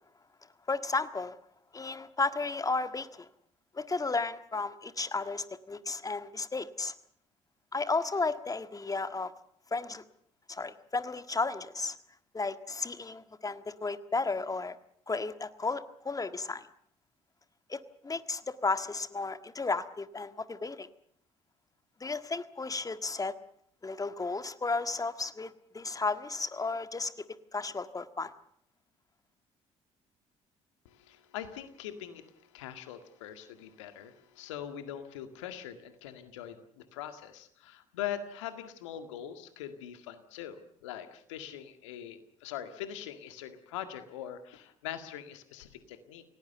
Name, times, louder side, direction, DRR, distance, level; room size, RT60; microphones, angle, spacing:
voice 1, 0.7-1.4 1.7-3.3 3.7-6.9 7.7-9.3 9.7-10.0 10.5-11.9 12.3-14.8 15.1-16.7 17.7-20.9 22.0-23.3 23.8-27.1 27.5-28.3, left 3 dB, 25° left, 11 dB, 1.7 m, -33 dB
voice 2, 30.9-46.2, left 10 dB, 80° left, 9 dB, 1.9 m, -42 dB
28.5 x 18.0 x 6.9 m, 0.66 s
hypercardioid pair, 50°, 15 cm